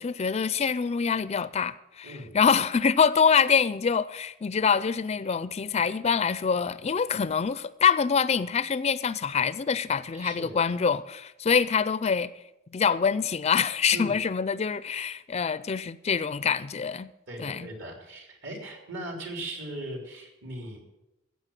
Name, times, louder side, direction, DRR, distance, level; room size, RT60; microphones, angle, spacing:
voice 1, 0.0-12.3 12.7-17.1 17.4-17.7, left 6 dB, 30° left, 0.4 m, -25 dB
voice 2, 10.1-10.6 13.9-14.2 17.3-20.8, right 1 dB, 65° right, 3.7 m, -38 dB
15.0 x 8.3 x 7.5 m
head